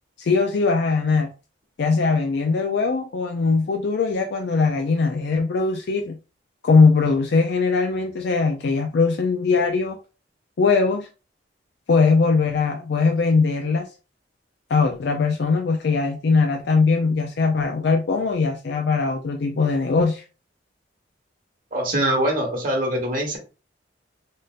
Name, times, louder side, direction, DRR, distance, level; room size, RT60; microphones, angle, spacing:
voice 1, 0.2-1.3 1.8-6.2 6.6-10.0 10.6-11.1 11.9-13.9 14.7-20.2, left 4 dB, 65° left, 0.4 m, -20 dB
voice 2, 21.7-23.4, right 1 dB, 50° right, 1.3 m, -23 dB
3.6 x 2.6 x 2.4 m
head